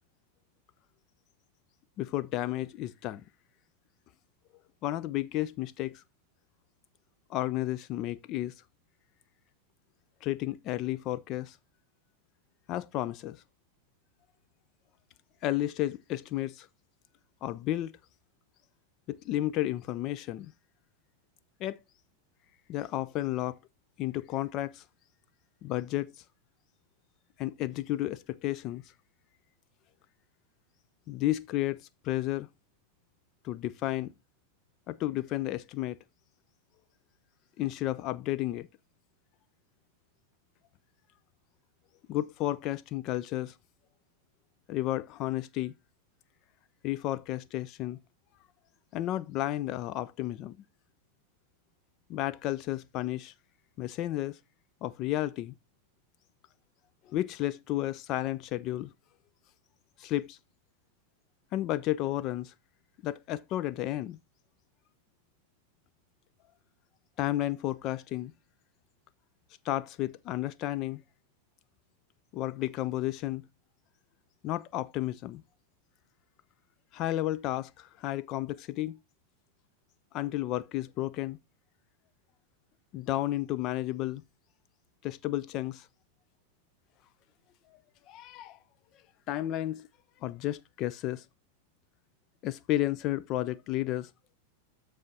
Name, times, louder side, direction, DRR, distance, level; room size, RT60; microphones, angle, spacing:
voice 1, 2.0-3.2 4.8-6.0 7.3-8.5 10.2-11.6 12.7-13.4 15.4-16.7 17.4-17.9 19.1-20.5 21.6-21.8 22.7-23.6 24.0-24.8 25.6-26.1 27.4-28.8 31.1-32.5 33.4-34.1 34.9-36.0 37.6-38.7 42.1-43.6 44.7-45.7 46.8-48.0 48.9-50.6 52.1-53.3 53.8-54.4 54.8-55.5 57.1-58.9 60.0-60.4 61.5-62.5 63.0-64.2 67.2-68.3 69.6-71.0 72.3-73.5 74.4-75.4 76.9-79.0 80.1-81.4 82.9-84.2 85.0-85.9 88.1-88.6 89.3-89.9 90.2-91.3 92.4-94.1, left 15 dB, 35° left, 0.4 m, -32 dB
13.5 x 4.8 x 2.7 m
figure-of-eight pair, 90°, 0 cm